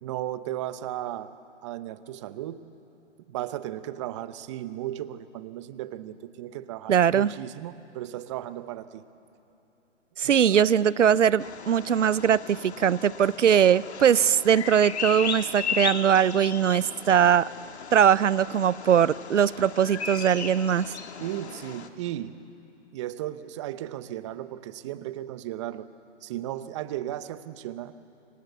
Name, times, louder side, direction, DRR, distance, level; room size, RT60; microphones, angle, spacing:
voice 1, 0.0-1.4 1.6-2.6 3.3-9.0 10.2-10.6 21.2-22.3 22.9-25.9 26.2-27.9, right 13 dB, 25° right, 14 dB, 0.8 m, -35 dB
voice 2, 6.9-7.3 10.2-17.5 17.9-20.9, right 8 dB, 85° right, 20 dB, 0.7 m, -21 dB
Bird vocalization bird call bird song, 11.4-21.9, left 6 dB, 65° left, 1.9 m, -36 dB
26.5 x 24.0 x 8.1 m, 2.9 s
hypercardioid pair, 145°, 36 cm